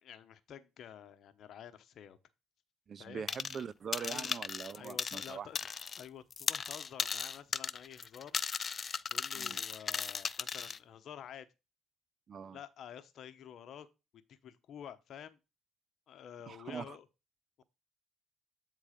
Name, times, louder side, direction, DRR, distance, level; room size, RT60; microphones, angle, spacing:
voice 1, 0.0-2.2 3.0-3.2 4.0-5.6 5.9-8.4 9.1-11.5 12.5-13.9 14.3-15.4 16.1-17.0, left 9 dB, 60° left, 0.9 m, -50 dB
voice 2, 2.9-5.5 9.3-9.6 12.3-12.6 16.5-17.0, right 7 dB, 45° right, 0.4 m, -43 dB
sound 1, 3.3-3.6 3.9-6.1 6.3-10.8, left 6 dB, 40° left, 0.3 m, -37 dB
8.4 x 3.8 x 5.0 m
supercardioid pair, 80°, 0 cm